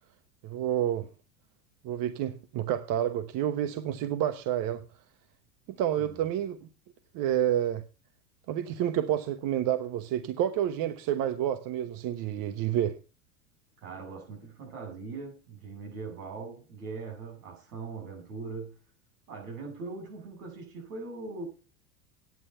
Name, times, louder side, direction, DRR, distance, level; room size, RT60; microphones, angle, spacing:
voice 1, 0.4-1.1 1.8-4.8 5.8-6.6 7.1-7.8 8.5-13.0, right 11 dB, 50° right, 1.1 m, -29 dB
voice 2, 6.0-6.3 13.8-18.8 19.3-21.4, right 4 dB, 80° right, 7.7 m, -41 dB
10.5 x 9.6 x 5.5 m
hypercardioid pair, 100°, 44 cm